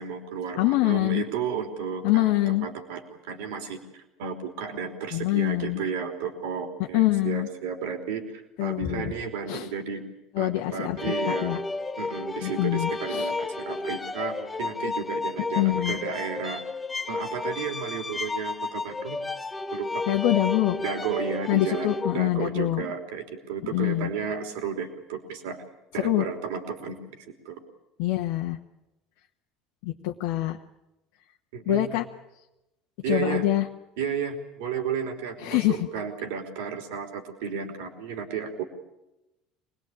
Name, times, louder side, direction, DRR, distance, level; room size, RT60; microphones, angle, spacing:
voice 1, 0.0-10.0 10.3-11.6 12.0-16.6 17.1-19.2 19.7-20.0 20.8-25.6 25.9-27.6 31.5-32.0 33.0-33.4 34.0-38.6, right 6 dB, 70° right, 6 dB, 3.3 m, -33 dB
voice 2, 0.6-1.3 2.0-2.7 5.1-5.8 6.9-7.5 8.6-9.1 9.5-9.7 10.3-11.6 12.4-13.3 15.6-16.0 20.1-20.8 21.5-22.8 23.7-24.1 26.0-26.3 28.0-28.6 29.8-30.6 31.7-32.0 33.1-33.7 35.4-35.8, left 16 dB, 65° left, 1 dB, 1.3 m, -25 dB
sound 1, 11.0-22.3, left 3 dB, 20° left, 1.5 m, -32 dB
25.5 x 20.5 x 8.7 m, 0.95 s
hypercardioid pair, 65°, 0 cm